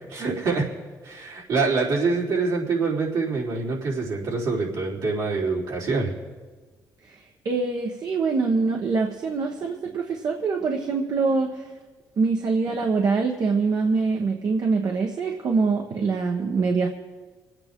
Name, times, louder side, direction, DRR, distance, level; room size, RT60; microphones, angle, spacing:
voice 1, 0.1-0.7 1.0-6.1, right 4 dB, 75° right, -5 dB, 3.8 m, -25 dB
voice 2, 7.4-11.7 12.2-16.9, right 4 dB, 60° right, 1 dB, 1.3 m, -24 dB
27.0 x 9.0 x 3.7 m, 1.4 s
supercardioid pair, 60°, 7 cm